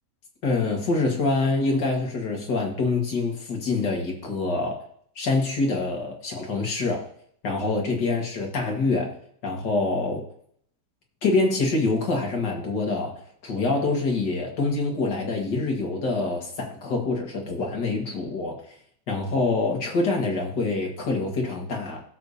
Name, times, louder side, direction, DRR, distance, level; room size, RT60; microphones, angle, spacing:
voice 1, 0.4-4.9 5.2-7.0 7.4-9.2 9.4-10.2 11.2-18.6 19.1-22.0, left 3 dB, 85° left, 0 dB, 2.5 m, -25 dB
16.0 x 6.7 x 2.8 m, 0.64 s
omnidirectional pair, 1.8 m